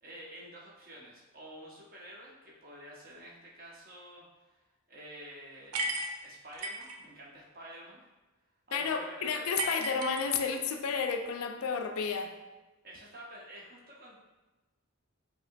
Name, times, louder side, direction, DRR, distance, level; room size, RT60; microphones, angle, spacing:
voice 1, 0.0-4.2 4.5-4.6 4.9-6.0 6.2-8.0 8.7-9.9 12.8-14.2, right 1 dB, 40° right, -4 dB, 0.9 m, -49 dB
sound 1, 5.7-7.0 9.6-10.7, right 2 dB, 80° right, 0.5 m, -35 dB
voice 2, 8.7-12.3, left 5 dB, 80° left, 6 dB, 0.4 m, -31 dB
5.0 x 2.9 x 2.6 m, 1.1 s
head